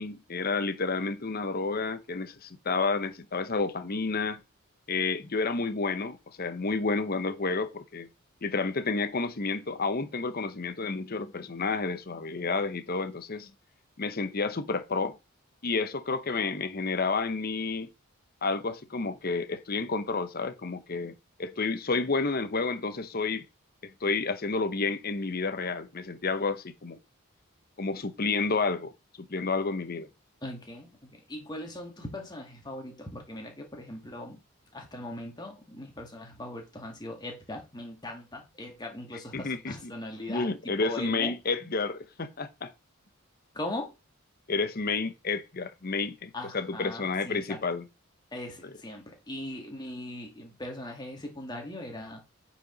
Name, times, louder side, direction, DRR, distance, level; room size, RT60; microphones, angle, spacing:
voice 1, 0.0-4.4 4.9-8.1 8.4-13.5 14.0-15.1 15.6-17.9 18.4-23.4 23.8-27.0 27.8-28.9 29.2-30.1 39.3-39.9 40.3-42.7 44.5-47.9 48.6-48.7, left 4 dB, 45° left, 0.8 m, -30 dB
voice 2, 30.4-34.4 34.7-41.3 43.5-43.9 46.3-47.6 48.3-52.2, left 1 dB, 20° left, 2.1 m, -40 dB
9.1 x 5.0 x 3.9 m
head